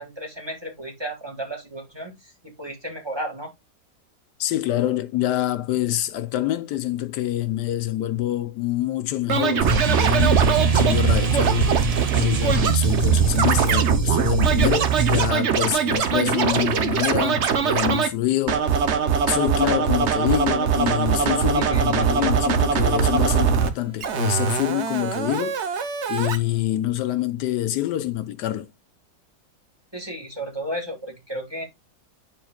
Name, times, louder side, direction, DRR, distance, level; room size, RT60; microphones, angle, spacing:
voice 1, 0.0-3.5 21.5-22.3 29.9-31.7, right 1 dB, 15° right, 2.0 m, -34 dB
voice 2, 4.4-11.7 12.1-18.9 19.2-25.8 26.1-28.7, left 14 dB, 80° left, 1.2 m, -26 dB
Scratching (performance technique), 9.3-18.1 18.5-23.7 24.0-26.4, right 7 dB, 55° right, 0.9 m, -23 dB
sound 1, 9.6-15.3, right 6 dB, 75° right, 0.3 m, -21 dB
11.0 x 4.5 x 2.3 m
omnidirectional pair, 1.8 m